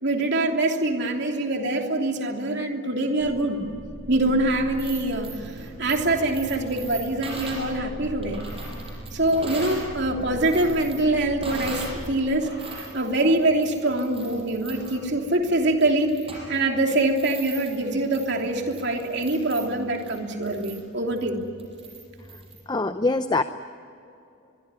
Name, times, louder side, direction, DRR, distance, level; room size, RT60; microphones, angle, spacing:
voice 1, 0.0-3.6 4.1-8.4 9.1-16.2 16.5-21.4, right 2 dB, 55° right, 2 dB, 3.1 m, -24 dB
sound 1, 3.2-12.1, equal, 5° left, 5.2 m, -40 dB
sound 2, 4.6-9.9 10.2-12.0 12.4-22.6, right 2 dB, 25° right, 6.8 m, -40 dB
voice 2, 22.7-23.4, left 3 dB, 20° left, 10 dB, 0.6 m, -23 dB
24.0 x 23.0 x 9.8 m, 2.7 s
head